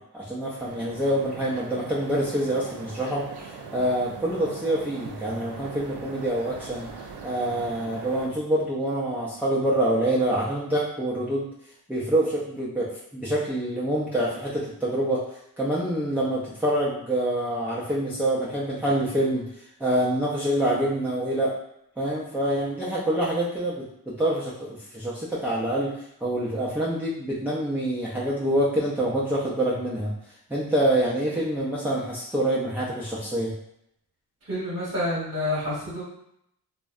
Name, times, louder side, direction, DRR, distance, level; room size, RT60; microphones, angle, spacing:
voice 1, 0.1-6.9 7.2-11.4 11.9-15.2 15.6-19.5 19.8-21.5 22.0-25.9 26.2-30.1 30.5-33.5, right 1 dB, 5° right, -7 dB, 0.4 m, -26 dB
sound 1, 0.6-8.3, right 4 dB, 75° right, 0.5 m, -41 dB
voice 2, 34.5-36.0, left 1 dB, 35° right, -8 dB, 1.0 m, -28 dB
2.6 x 2.1 x 2.4 m, 0.76 s
wide cardioid pair, 90°, 40 cm